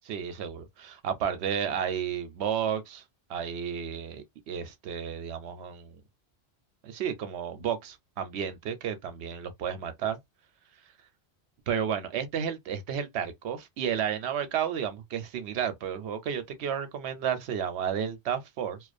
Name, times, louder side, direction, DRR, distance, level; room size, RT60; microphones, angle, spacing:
voice 1, 0.1-3.0 3.3-6.0 6.8-10.2 11.7-18.8, right 8 dB, 80° right, 0.9 m, -32 dB
2.4 x 2.1 x 2.4 m
omnidirectional pair, 1.1 m